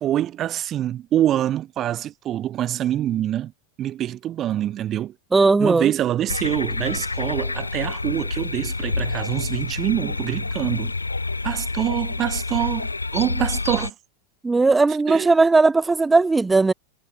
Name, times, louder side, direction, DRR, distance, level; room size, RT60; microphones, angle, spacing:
voice 1, 0.0-3.5 3.8-5.1 5.6-10.9 11.4-13.9 15.1-15.3, right 12 dB, 30° right, 0.9 m, -25 dB
voice 2, 5.3-5.9 14.4-16.7, right 3 dB, 10° right, 0.3 m, -17 dB
sound 1, 6.3-13.9, left 3 dB, 80° left, 0.6 m, -28 dB
figure-of-eight pair, 90°, 0 cm